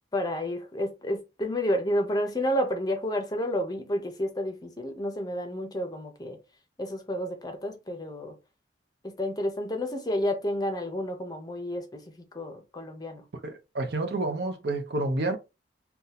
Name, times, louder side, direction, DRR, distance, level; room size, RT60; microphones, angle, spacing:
voice 1, 0.1-6.4 6.8-8.3 9.0-12.0 12.3-13.2, equal, 20° left, 0.6 m, -30 dB
voice 2, 13.4-15.4, right 2 dB, 65° right, 0.7 m, -29 dB
2.6 x 2.2 x 4.0 m
head